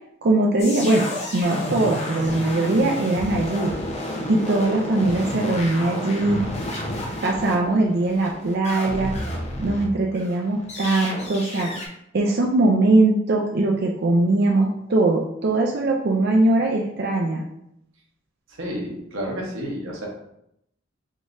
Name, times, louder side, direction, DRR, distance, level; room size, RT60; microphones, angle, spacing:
voice 1, 0.2-1.1 1.3-3.7 4.3-6.4 7.2-9.1 9.6-11.7 12.1-17.4, right 2 dB, 55° right, -1 dB, 0.5 m, -21 dB
sound 1, 0.6-9.9 10.1-11.9, left 1 dB, 35° left, 0.9 m, -31 dB
voice 2, 18.5-20.1, equal, 85° right, -1 dB, 1.2 m, -30 dB
4.6 x 3.7 x 2.6 m, 0.77 s
head